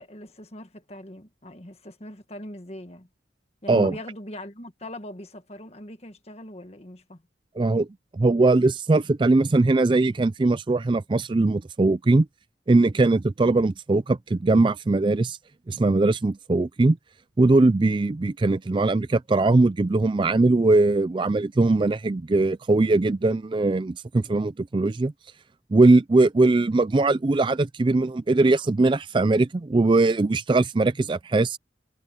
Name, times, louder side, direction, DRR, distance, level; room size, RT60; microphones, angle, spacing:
voice 1, 0.0-3.1 3.6-7.2, left 1 dB, 35° left, 1.7 m, -40 dB
voice 2, 7.6-7.9 8.1-12.3 12.7-15.4 15.7-17.0 17.4-25.1 25.7-31.6, right 2 dB, 25° right, 0.3 m, -20 dB
head